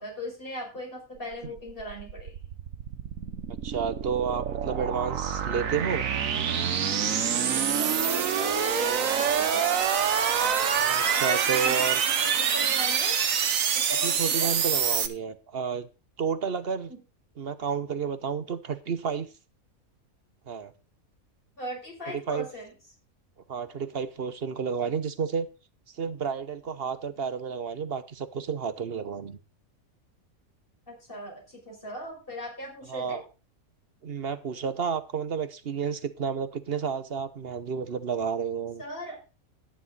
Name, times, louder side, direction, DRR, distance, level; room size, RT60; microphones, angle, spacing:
voice 1, 0.0-2.4 7.4-9.8 10.4-10.7 11.0-11.8 12.2-13.2 13.7-14.5 16.9-17.0 21.6-22.7 30.9-33.2 38.8-39.2, equal, 40° left, -1 dB, 6.1 m, -38 dB
sound 1, 1.3-15.1, right 7 dB, 70° right, 1.4 m, -26 dB
voice 2, 3.6-6.0 10.8-12.0 14.0-15.9 16.2-16.9 17.4-19.3 20.5-20.7 22.1-22.5 23.5-25.5 26.0-29.4 32.9-33.2 34.0-38.8, right 6 dB, 50° right, 12 dB, 1.0 m, -31 dB
11.0 x 10.0 x 3.9 m, 0.31 s
omnidirectional pair, 1.5 m